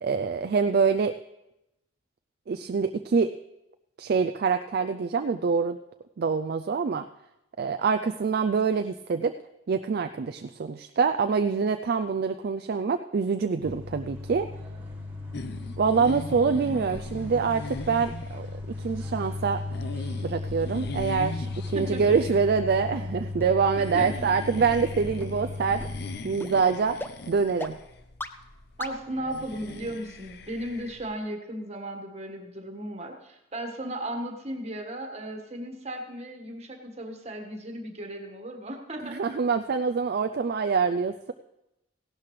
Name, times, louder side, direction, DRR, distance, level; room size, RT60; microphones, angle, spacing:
voice 1, 0.0-1.1 2.5-3.3 4.0-5.8 6.2-7.1 7.6-9.3 9.7-14.5 15.8-18.5 18.8-19.6 20.2-25.8 26.2-27.0 27.3-27.8 39.0-41.3, right 5 dB, 50° right, 7 dB, 0.4 m, -25 dB
sound 1, 13.6-26.2, left 2 dB, 10° right, 1.7 m, -36 dB
sound 2, 15.3-31.1, left 2 dB, 55° left, 0.7 m, -41 dB
sound 3, 22.2-22.3 22.8-22.9 23.4-23.5 24.0-24.1 24.6-24.7 25.2-25.3 25.8-25.9 26.4-26.5 27.0-27.1 27.6-27.7 28.2-28.3 28.8-28.9, left 2 dB, 10° left, 0.4 m, -36 dB
voice 2, 23.8-24.1 28.8-39.2, right 1 dB, 35° right, 3 dB, 1.5 m, -36 dB
16.5 x 11.5 x 3.2 m, 0.90 s
head